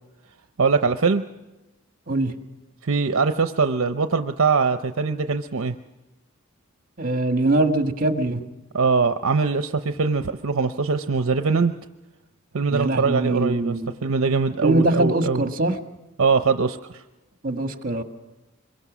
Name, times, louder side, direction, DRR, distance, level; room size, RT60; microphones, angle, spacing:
voice 1, 0.6-1.2 2.8-5.8 8.7-11.7 12.5-13.7 14.0-15.4 16.2-17.0, right 4 dB, 70° right, 8 dB, 0.7 m, -22 dB
voice 2, 7.0-8.4 12.7-13.9 14.6-15.8 17.4-18.0, right 2 dB, 40° right, 6 dB, 1.6 m, -22 dB
25.5 x 23.0 x 6.2 m, 1.1 s
head